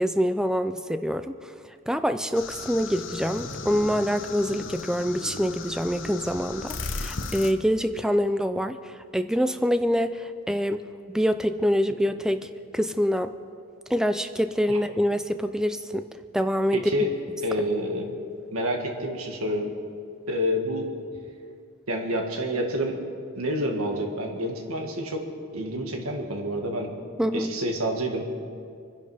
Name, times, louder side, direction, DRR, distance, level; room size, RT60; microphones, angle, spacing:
voice 1, 0.0-1.5 1.9-13.3 13.9-16.1 16.3-16.8 27.2-27.5, equal, 5° right, 9 dB, 0.4 m, -25 dB
sound 1, 2.3-7.5, left 3 dB, 60° left, 1.0 m, -36 dB
voice 2, 16.7-17.1 17.4-18.2 18.5-19.7 20.3-20.9 21.9-23.0 23.4-25.3 25.5-26.9 27.3-28.3, equal, 90° right, 2 dB, 2.0 m, -28 dB
25.0 x 10.5 x 5.0 m, 2.3 s
head